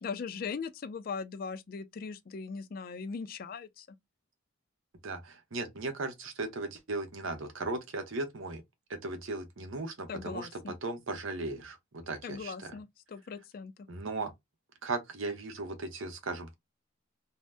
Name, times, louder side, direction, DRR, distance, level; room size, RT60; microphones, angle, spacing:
voice 1, 0.0-4.0 10.1-10.8 12.2-13.9, left 5 dB, 45° left, 0.3 m, -39 dB
voice 2, 5.0-8.6 8.9-12.7 13.9-14.3 14.8-16.5, right 3 dB, 80° right, 0.8 m, -37 dB
2.7 x 2.0 x 3.3 m
head